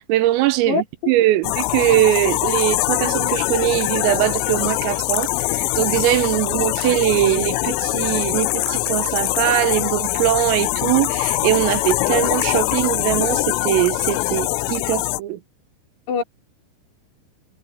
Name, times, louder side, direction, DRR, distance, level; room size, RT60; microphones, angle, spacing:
voice 1, 0.0-15.4, right 15 dB, 85° right, 3.7 m, -21 dB
voice 2, 0.7-1.1 16.1-16.2, left 5 dB, 55° left, 6.0 m, -23 dB
sound 1, 1.4-15.2, left 20 dB, 85° left, 3.2 m, -23 dB
omnidirectional pair, 6.0 m